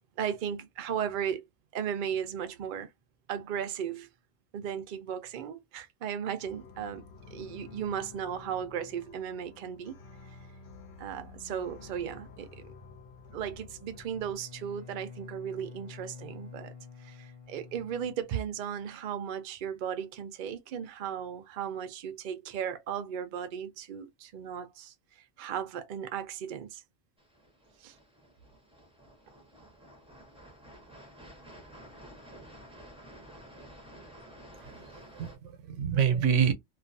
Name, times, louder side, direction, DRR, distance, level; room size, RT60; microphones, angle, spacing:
voice 1, 0.2-1.4 1.7-2.9 3.3-4.1 4.5-7.0 7.3-10.0 11.0-12.7 13.3-16.7 17.0-26.8 27.8-28.0, right 8 dB, 55° right, 0.6 m, -36 dB
sound 1, 6.4-14.3, left 4 dB, 70° left, 0.9 m, -50 dB
Bowed string instrument, 13.9-18.7, left 6 dB, 40° left, 0.5 m, -48 dB
sound 2, 27.2-35.4, right 1 dB, 5° right, 0.6 m, -51 dB
voice 2, 34.5-36.5, right 7 dB, 90° right, 1.0 m, -28 dB
2.5 x 2.3 x 2.5 m
omnidirectional pair, 1.2 m